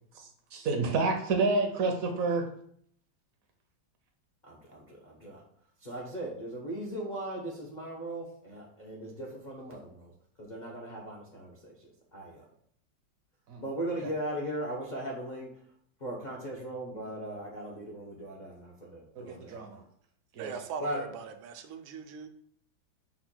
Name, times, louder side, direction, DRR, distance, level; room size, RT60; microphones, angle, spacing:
voice 1, 0.1-2.5 13.5-13.6 19.2-19.8 20.3-20.5, right 3 dB, 65° right, 3 dB, 0.8 m, -29 dB
voice 2, 4.4-5.4 5.8-10.1 10.4-12.4 13.6-15.5 16.0-19.6 20.8-21.2, right 1 dB, 70° left, -4 dB, 0.4 m, -38 dB
voice 3, 20.4-22.3, right 6 dB, 85° right, 7 dB, 1.4 m, -40 dB
5.6 x 2.2 x 4.2 m, 0.63 s
omnidirectional pair, 2.1 m